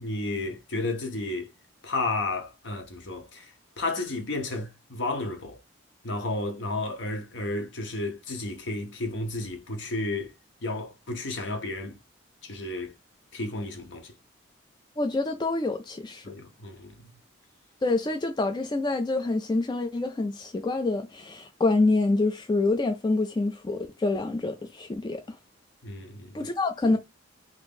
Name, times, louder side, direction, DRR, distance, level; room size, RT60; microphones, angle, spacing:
voice 1, 0.0-1.5 1.8-5.6 6.0-10.3 10.6-12.0 12.4-12.9 13.3-14.1 16.2-17.1 25.8-26.5, left 2 dB, 60° left, 0.8 m, -32 dB
voice 2, 15.0-16.3 17.8-25.2 26.3-27.0, left 2 dB, 20° left, 0.3 m, -26 dB
2.8 x 2.5 x 3.6 m
head